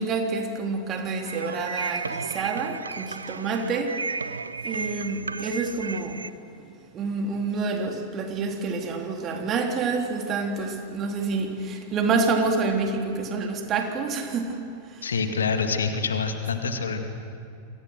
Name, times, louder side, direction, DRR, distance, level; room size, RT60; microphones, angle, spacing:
voice 1, 0.0-4.0 4.6-6.2 6.9-15.0, right 4 dB, 30° right, 3 dB, 3.4 m, -28 dB
sound 1, 1.2-6.3, right 4 dB, 75° right, 0.7 m, -34 dB
voice 2, 15.0-17.0, left 5 dB, 70° left, 6 dB, 2.3 m, -26 dB
28.5 x 24.5 x 6.5 m, 2.4 s
figure-of-eight pair, 90°, 0 cm